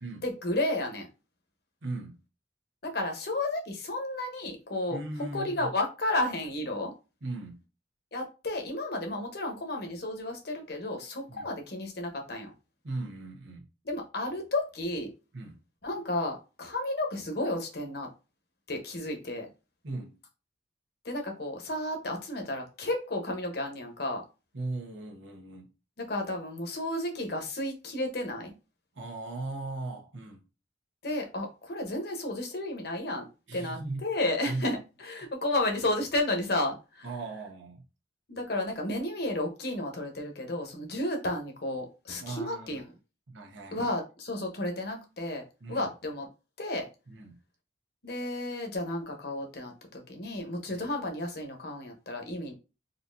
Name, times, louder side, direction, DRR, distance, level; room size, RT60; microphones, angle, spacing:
voice 1, 0.2-1.1 2.8-5.0 5.3-6.9 8.1-12.5 13.8-15.1 15.8-18.1 18.7-19.5 21.0-24.2 26.0-28.5 31.0-37.1 38.3-42.9 43.7-45.4 45.7-46.3 46.6-46.9 48.0-52.5, left 1 dB, 55° left, 1.0 m, -32 dB
voice 2, 1.8-2.2 4.9-5.7 7.2-7.6 11.3-11.5 12.8-13.6 15.3-15.6 19.8-20.2 24.5-25.7 28.9-30.4 33.5-34.0 34.5-34.7 37.0-37.8 42.2-42.8 43.3-43.9 45.6-45.9 47.1-47.4 50.7-50.9, right 2 dB, 85° right, 1.0 m, -38 dB
4.0 x 2.7 x 2.6 m
head